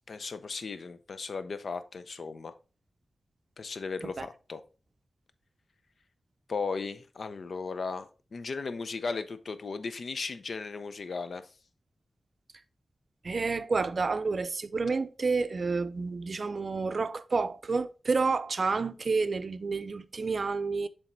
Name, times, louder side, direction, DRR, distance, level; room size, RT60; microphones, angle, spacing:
voice 1, 0.1-2.5 3.6-4.6 6.5-11.5, left 4 dB, 70° left, 0.5 m, -36 dB
voice 2, 13.2-20.9, right 4 dB, 55° right, 0.4 m, -29 dB
7.1 x 3.4 x 3.9 m
wide cardioid pair, 85°, 0 cm